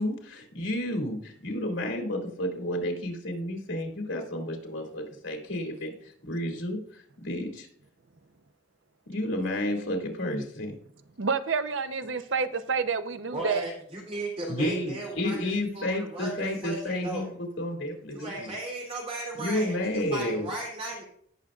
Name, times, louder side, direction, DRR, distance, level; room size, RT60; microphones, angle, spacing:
voice 1, 0.0-5.9 6.3-6.8 7.2-7.7 9.1-10.7 14.5-18.5 19.4-20.5, left 1 dB, 90° left, 2 dB, 2.6 m, -31 dB
voice 2, 11.2-13.6, right 5 dB, 75° right, 11 dB, 0.8 m, -28 dB
voice 3, 13.3-17.3 18.1-21.0, right 1 dB, 30° right, -2 dB, 3.3 m, -36 dB
17.0 x 6.5 x 2.5 m, 0.64 s
head